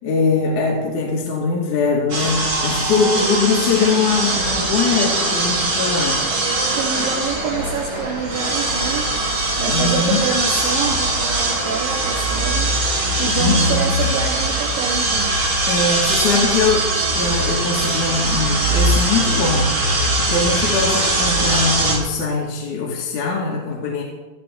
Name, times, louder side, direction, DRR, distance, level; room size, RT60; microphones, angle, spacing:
voice 1, 0.0-6.3 9.7-10.3 13.3-13.9 15.7-24.0, left 4 dB, 50° left, -3 dB, 2.8 m, -21 dB
sound 1, 2.1-22.0, right 2 dB, 35° right, 2.7 m, -21 dB
voice 2, 2.8-3.3 6.7-9.1 9.6-15.4, right 5 dB, 75° right, 3 dB, 2.0 m, -27 dB
17.0 x 14.0 x 4.5 m, 1.2 s
omnidirectional pair, 5.4 m